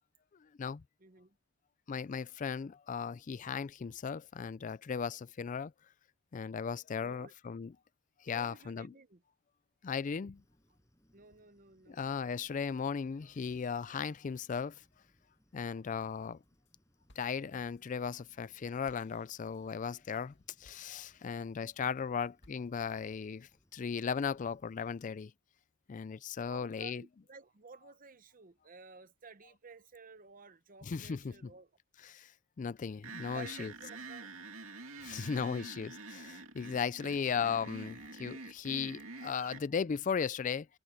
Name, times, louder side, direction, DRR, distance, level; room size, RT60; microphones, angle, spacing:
voice 1, 1.0-1.4 7.0-7.3 8.2-9.2 11.1-12.1 26.5-31.7 33.3-34.3, right 4 dB, 40° right, 0.9 m, -54 dB
voice 2, 1.9-5.7 6.3-7.7 8.2-8.9 9.8-10.4 11.9-14.8 15.5-16.4 17.2-20.3 20.6-25.3 25.9-27.0 30.8-31.3 32.0-32.3 32.6-33.7 35.0-40.7, left 6 dB, 40° left, 0.4 m, -36 dB
sound 1, 10.3-25.2, equal, 15° left, 7.3 m, -71 dB
sound 2, 16.2-16.7 17.1-21.6 22.0-23.0, left 1 dB, 60° left, 2.6 m, -67 dB
sound 3, 33.0-39.6, right 3 dB, 85° right, 2.5 m, -47 dB
head